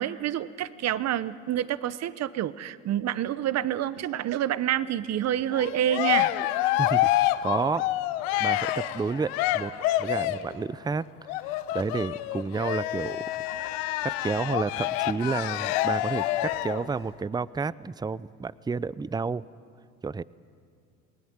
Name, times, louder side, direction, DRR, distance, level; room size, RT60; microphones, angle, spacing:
voice 1, 0.0-6.3, right 11 dB, 50° right, 16 dB, 1.0 m, -28 dB
Cheering, 5.5-10.5 11.3-16.9, left 14 dB, 80° left, 1.0 m, -27 dB
voice 2, 6.8-7.1 7.4-7.8 8.4-9.7 10.0-11.1 11.7-13.2 14.0-19.4 20.0-20.2, right 4 dB, 10° right, 19 dB, 0.5 m, -30 dB
28.0 x 19.5 x 8.8 m, 2.3 s
hypercardioid pair, 75°, 33 cm